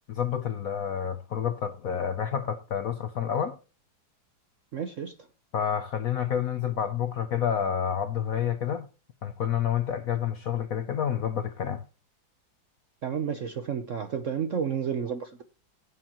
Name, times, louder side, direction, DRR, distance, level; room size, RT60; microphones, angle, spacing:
voice 1, 0.1-3.6 5.5-8.9 9.2-11.8, left 8 dB, 65° left, 0.9 m, -29 dB
voice 2, 4.7-5.1 13.0-15.4, right 7 dB, 60° right, 0.8 m, -31 dB
17.0 x 8.2 x 3.0 m
omnidirectional pair, 2.2 m